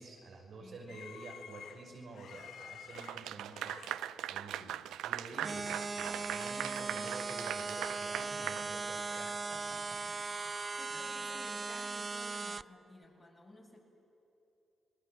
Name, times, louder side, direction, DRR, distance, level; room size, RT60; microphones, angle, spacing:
voice 1, 0.0-3.8 4.3-10.0 10.9-11.0, right 2 dB, 65° right, 0 dB, 5.6 m, -49 dB
voice 2, 0.6-1.0 8.9-9.2 10.8-13.8, left 2 dB, 20° left, -1 dB, 8.0 m, -54 dB
sound 1, 0.9-4.7 5.1-5.3 5.6-7.1 7.4-7.5 8.1-9.4 9.7-11.5, left 8 dB, 75° left, 1.5 m, -54 dB
Clapping / Applause, 2.9-9.3, right 12 dB, 85° right, 0.5 m, -40 dB
sound 2, 5.4-12.6, right 4 dB, 35° right, 0.5 m, -38 dB
29.5 x 20.0 x 7.8 m, 2.8 s
supercardioid pair, 65°, 0 cm